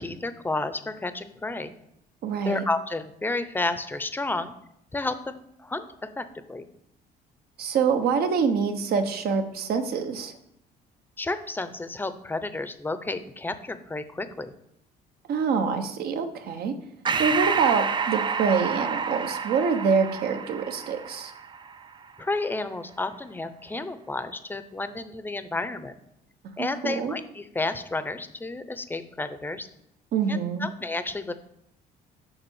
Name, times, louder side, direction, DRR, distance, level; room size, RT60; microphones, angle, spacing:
voice 1, 0.0-1.7 2.4-4.5 4.9-5.9 6.2-6.6 11.2-14.5 22.2-25.9 26.6-29.7 30.3-31.4, left 2 dB, 10° left, 11 dB, 0.7 m, -31 dB
voice 2, 2.2-2.6 7.6-10.3 15.3-16.7 17.2-21.3 26.6-27.1 30.1-30.7, right 5 dB, 65° right, 7 dB, 1.1 m, -25 dB
Breathing, 17.1-21.9, right 6 dB, 25° right, 0.5 m, -29 dB
6.9 x 5.5 x 7.1 m, 0.78 s
cardioid pair, 110°, 17 cm